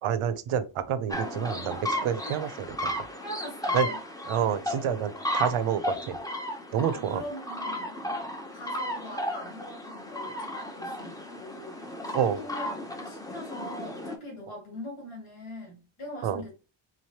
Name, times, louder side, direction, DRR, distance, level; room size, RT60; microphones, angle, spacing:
voice 1, 0.0-3.1 3.7-3.9 4.2-6.2 6.7-7.2 12.1-12.4 16.2-16.4, right 8 dB, 85° right, 0.6 m, -28 dB
sound 1, 1.1-14.2, left 1 dB, 10° left, 0.6 m, -34 dB
voice 2, 2.2-2.6 3.2-4.0 6.9-7.9 8.5-16.5, left 1 dB, 80° left, 2.1 m, -42 dB
3.9 x 3.2 x 2.8 m
wide cardioid pair, 115°, 49 cm